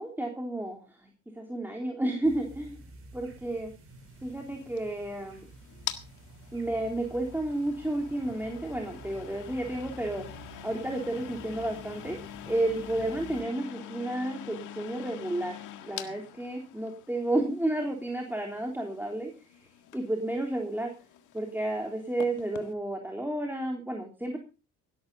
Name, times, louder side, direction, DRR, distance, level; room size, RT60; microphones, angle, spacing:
voice 1, 0.0-2.8 3.1-3.7 4.2-5.5 6.5-12.2 12.5-19.3 19.6-20.9 21.3-24.4, right 1 dB, 5° right, 1 dB, 3.5 m, -32 dB
sound 1, 2.2-13.4, right 2 dB, 45° right, 6.4 m, -50 dB
sound 2, 4.0-22.7, left 11 dB, 90° left, 1.8 m, -45 dB
17.5 x 12.5 x 4.1 m, 0.32 s
cardioid pair, 90°, 30 cm